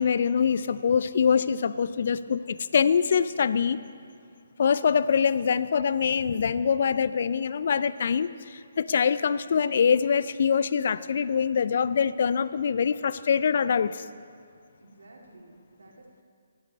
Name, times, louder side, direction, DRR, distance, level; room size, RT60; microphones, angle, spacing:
voice 1, 0.0-3.8 4.6-14.0, left 6 dB, 55° left, 15 dB, 0.4 m, -24 dB
voice 2, 14.8-16.2, right 2 dB, 70° right, -1 dB, 2.2 m, -52 dB
17.5 x 11.5 x 4.2 m, 2.2 s
figure-of-eight pair, 140°, 0 cm